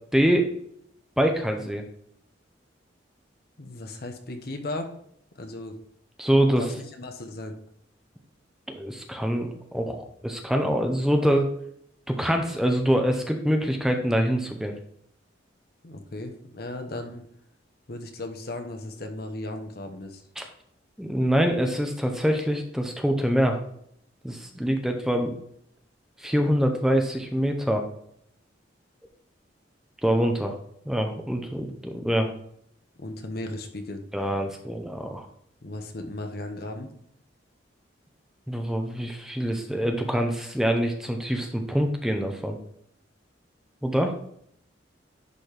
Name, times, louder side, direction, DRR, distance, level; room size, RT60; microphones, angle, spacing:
voice 1, 0.1-0.5 1.2-1.8 6.2-6.7 8.7-11.5 12.1-14.7 20.4-20.5 21.0-23.6 24.2-25.4 26.2-27.9 30.0-30.5 30.9-32.3 34.1-35.3 38.5-42.6 43.8-44.1, equal, 5° right, 3 dB, 0.7 m, -25 dB
voice 2, 3.6-4.9 5.4-5.7 6.6-7.5 15.8-17.3 17.9-20.2 33.0-34.0 35.6-36.9, left 2 dB, 55° left, 6 dB, 1.0 m, -36 dB
10.5 x 4.1 x 3.3 m, 0.68 s
head